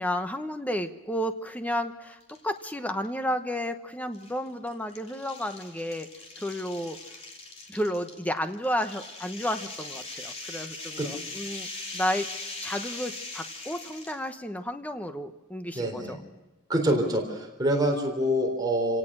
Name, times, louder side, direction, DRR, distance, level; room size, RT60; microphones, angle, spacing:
voice 1, 0.0-6.1 6.4-7.0 7.7-11.7 11.9-12.3 12.6-16.2, equal, 5° left, 8 dB, 1.0 m, -32 dB
sound 1, 2.2-2.6 3.0-3.1 4.1-14.3, left 2 dB, 30° left, 3.2 m, -40 dB
voice 2, 15.8-16.2 16.7-19.0, equal, 20° right, 2 dB, 3.7 m, -26 dB
28.0 x 18.0 x 6.2 m, 1.1 s
head